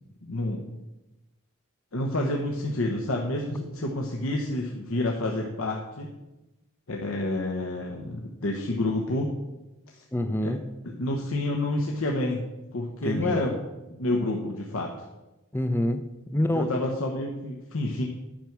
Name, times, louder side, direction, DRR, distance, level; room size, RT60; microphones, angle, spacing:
voice 1, 0.2-0.6 1.9-6.1 6.9-9.3 9.9-10.0 10.4-10.5 11.0-12.4 12.7-13.5 14.0-15.1 16.3-18.1, left 1 dB, 70° left, 0 dB, 1.0 m, -29 dB
voice 2, 10.1-10.7 13.0-13.4 15.5-16.7, left 1 dB, 10° left, 10 dB, 0.5 m, -27 dB
10.0 x 5.9 x 6.1 m, 1.0 s
head